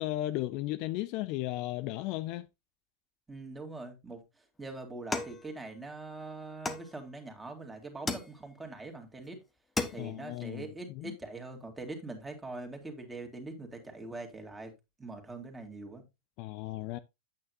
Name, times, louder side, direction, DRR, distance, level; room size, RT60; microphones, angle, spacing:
voice 1, 0.0-2.5 10.0-11.2 16.4-17.0, left 16 dB, 45° left, 0.5 m, -35 dB
voice 2, 3.3-4.2 4.6-9.4 9.9-14.7 15.0-16.0, right 2 dB, 10° right, 2.5 m, -43 dB
Metal Tin Hit bang, 5.1-6.1 6.7-7.4 8.1-8.8 9.2-9.3 9.6-10.3, left 3 dB, 15° left, 1.2 m, -37 dB
8.9 x 8.5 x 2.7 m
figure-of-eight pair, 90°, 0 cm